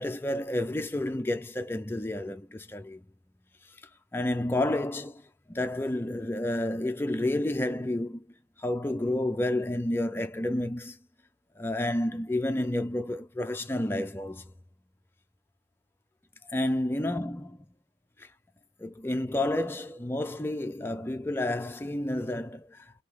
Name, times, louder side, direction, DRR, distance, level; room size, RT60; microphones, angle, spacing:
voice 1, 0.0-3.0 4.1-5.2 5.5-8.2 8.6-11.0 11.6-14.4 16.5-17.6 18.8-22.8, left 1 dB, 15° left, 0.4 m, -30 dB
3.2 x 2.8 x 4.4 m
head